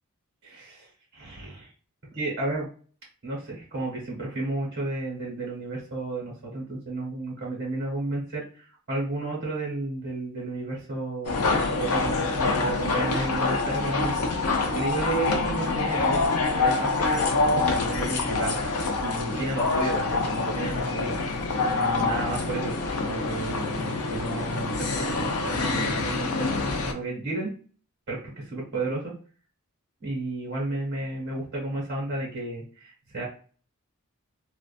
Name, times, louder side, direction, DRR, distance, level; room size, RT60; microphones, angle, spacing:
voice 1, 0.4-1.7 2.1-2.7 3.2-14.1 14.7-16.3 16.6-21.1 21.6-22.7 23.0-26.5 26.9-27.5 28.1-28.2 28.5-29.1 30.0-33.3, right 2 dB, 50° right, -3 dB, 1.2 m, -32 dB
sound 1, 11.2-26.9, left 3 dB, 80° left, 0.5 m, -26 dB
2.5 x 2.3 x 2.4 m, 0.39 s
head